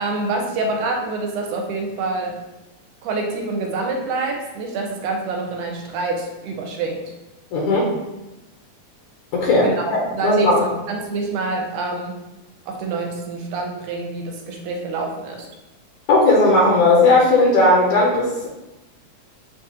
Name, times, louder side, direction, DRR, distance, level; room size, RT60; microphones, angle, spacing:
voice 1, 0.0-2.4 3.0-7.1 9.6-10.5 10.9-12.2 12.7-15.5, right 3 dB, 80° right, 2 dB, 2.1 m, -26 dB
voice 2, 7.5-7.9 9.3-10.6 16.1-18.5, left 2 dB, 75° left, -3 dB, 2.0 m, -16 dB
7.1 x 2.4 x 2.8 m, 1.0 s
omnidirectional pair, 3.7 m